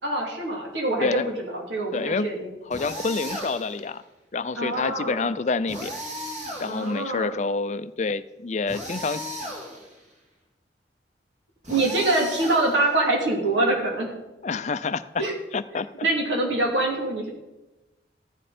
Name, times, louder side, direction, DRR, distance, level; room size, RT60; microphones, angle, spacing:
voice 1, 0.0-2.5 4.6-5.3 6.7-7.3 11.7-14.1 15.2-15.3 16.0-17.3, right 2 dB, 90° right, -1 dB, 3.0 m, -25 dB
voice 2, 1.0-1.4 1.9-2.3 2.7-4.0 4.3-6.0 6.6-9.2 14.4-15.0 15.5-15.9, left 4 dB, 40° left, 13 dB, 0.4 m, -27 dB
sound 1, 2.7-3.9 5.7-7.1 8.7-10.0 11.6-13.1, equal, 40° right, 2.6 m, -36 dB
14.5 x 10.0 x 4.3 m, 1.1 s
head